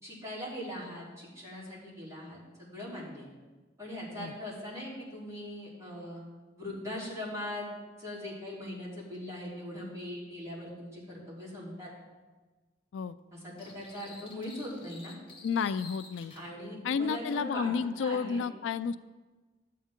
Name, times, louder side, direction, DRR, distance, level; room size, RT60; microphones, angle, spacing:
voice 1, 0.0-3.3 3.8-6.2 6.6-7.7 8.0-11.9 13.3-15.1 16.3-17.7 18.0-18.4, left 1 dB, 15° right, -8 dB, 3.5 m, -40 dB
sound 1, 13.6-16.5, left 3 dB, 30° left, 1.3 m, -51 dB
voice 2, 15.4-16.3 16.8-19.0, left 6 dB, 85° left, 14 dB, 0.3 m, -31 dB
12.0 x 8.5 x 3.7 m, 1.3 s
head